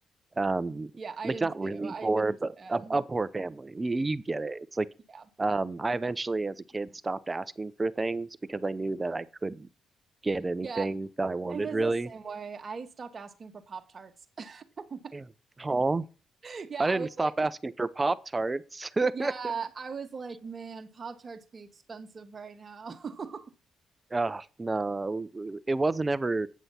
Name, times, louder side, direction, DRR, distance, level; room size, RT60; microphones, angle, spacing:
voice 1, 0.4-0.9 1.2-4.9 5.4-9.7 10.2-12.1 15.1-15.2 15.6-16.0 16.8-19.3 24.1-26.5, right 3 dB, 20° right, 0.6 m, -30 dB
voice 2, 1.0-3.0 5.1-5.2 10.6-10.9 11.5-15.1 16.4-17.3 19.1-23.5, right 5 dB, 40° right, 1.5 m, -40 dB
9.4 x 6.2 x 5.7 m
cardioid pair, 90°, 0 cm